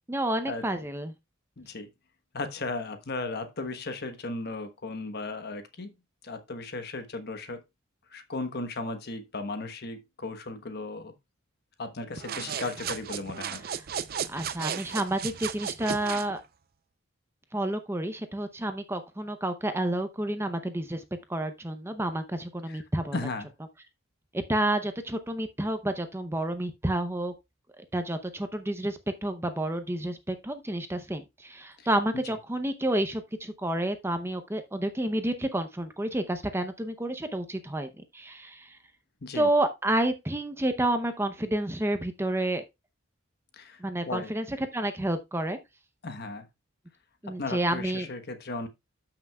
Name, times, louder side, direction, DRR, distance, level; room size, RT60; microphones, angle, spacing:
voice 1, 0.1-1.1 13.7-13.8 14.3-16.4 17.5-21.0 21.3-23.2 24.3-27.3 27.8-38.7 39.3-42.6 43.8-45.6 47.2-48.1, right 1 dB, 10° right, 0.7 m, -30 dB
voice 2, 1.6-1.9 2.3-5.9 6.2-7.6 8.1-11.1 11.8-13.6 22.7-22.8 23.1-23.5 31.8-31.9 32.2-32.4 39.2-39.5 43.6-44.3 46.0-46.5 47.4-48.7, left 3 dB, 55° left, 1.2 m, -36 dB
Bullet Fly Bys, 12.1-16.3, right 8 dB, 50° right, 0.5 m, -35 dB
13.0 x 5.9 x 2.3 m
head